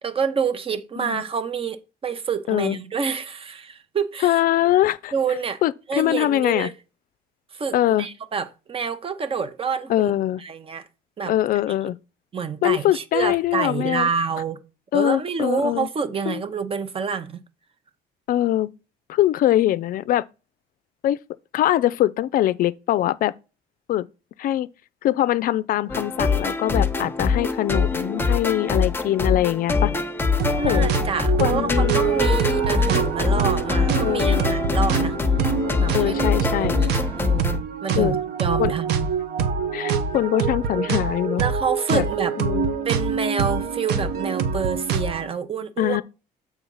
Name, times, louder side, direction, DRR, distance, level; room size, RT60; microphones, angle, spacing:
voice 1, 0.0-4.4 5.1-5.6 5.9-6.7 7.5-10.1 10.4-10.8 11.2-11.3 12.3-14.6 14.9-17.4 30.6-35.2 35.8-36.9 37.2-39.1 41.4-42.3 42.9-46.0, right 6 dB, 35° right, 0.8 m, -27 dB
voice 2, 2.5-2.8 4.2-5.1 5.6-6.7 7.7-8.1 9.9-10.4 11.3-12.0 12.6-14.1 14.9-15.9 16.3-16.4 18.3-18.7 19.1-20.2 21.0-21.2 21.5-23.3 23.9-24.1 24.4-24.7 25.0-29.9 30.6-30.9 31.4-31.9 34.0-34.5 35.9-36.8 37.9-38.2 38.6-38.7 39.7-41.4 41.9-42.0 42.4-42.7 45.8-46.0, left 13 dB, 60° left, 0.4 m, -22 dB
sound 1, 25.9-37.6, left 4 dB, 15° left, 0.9 m, -23 dB
sound 2, 30.4-45.3, right 6 dB, 75° right, 0.9 m, -25 dB
7.2 x 3.6 x 5.4 m
cardioid pair, 110°, 17 cm